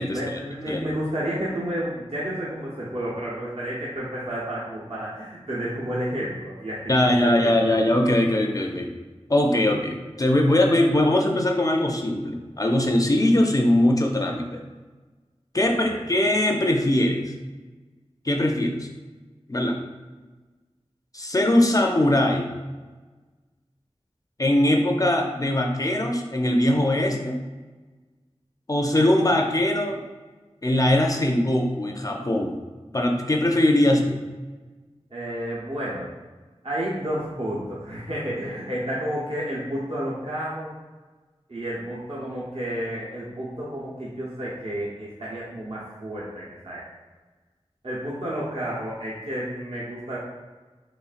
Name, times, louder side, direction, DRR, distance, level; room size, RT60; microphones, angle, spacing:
voice 1, 0.1-7.5 15.8-16.1 35.1-36.1 36.6-40.7 41.5-46.8 47.8-50.2, equal, 65° right, -7 dB, 0.8 m, -31 dB
voice 2, 6.9-8.9 9.3-14.6 15.5-17.3 18.2-18.9 19.5-19.8 21.1-22.5 24.4-27.4 28.7-30.0 30.6-32.6 32.9-34.2, left 1 dB, 35° left, 2 dB, 0.4 m, -21 dB
4.0 x 3.1 x 2.4 m, 1.3 s
wide cardioid pair, 55°, 11 cm